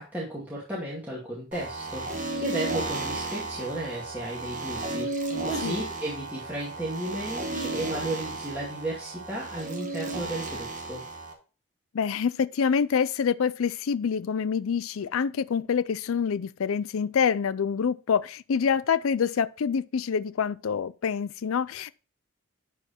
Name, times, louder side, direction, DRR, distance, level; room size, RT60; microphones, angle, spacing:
voice 1, 0.0-11.0, right 1 dB, 10° right, 2.3 m, -34 dB
sound 1, 1.5-11.3, right 2 dB, 35° right, 1.5 m, -34 dB
voice 2, 11.9-21.9, left 6 dB, 75° left, 0.4 m, -26 dB
11.5 x 4.8 x 4.3 m
head